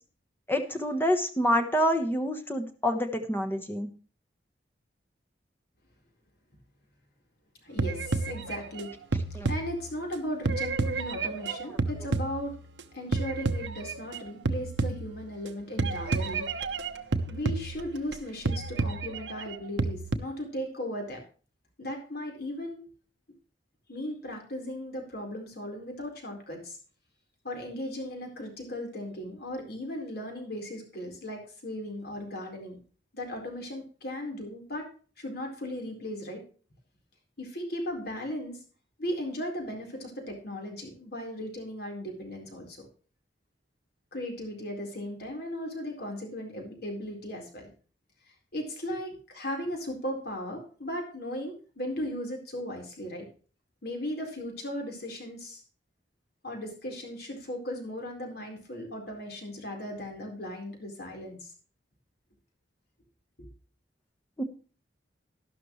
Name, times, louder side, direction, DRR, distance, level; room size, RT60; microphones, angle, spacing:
voice 1, 0.5-3.9 9.3-9.5 64.4-64.5, equal, 10° left, 5 dB, 1.1 m, -27 dB
voice 2, 7.6-8.9 9.5-12.5 12.9-16.5 17.3-21.2 21.8-22.8 23.9-26.8 27.4-32.8 33.1-34.9 35.2-36.4 37.4-38.6 39.0-42.9 44.1-47.7 48.5-53.3 53.8-55.6 56.4-61.5 63.4-63.5, equal, 60° left, 1 dB, 4.2 m, -37 dB
sound 1, 7.8-10.1 10.5-12.8 13.1-14.2 14.5-15.5 15.8-18.1 18.5-20.2, right 3 dB, 80° right, 1.0 m, -30 dB
12.0 x 12.0 x 3.2 m, 0.39 s
head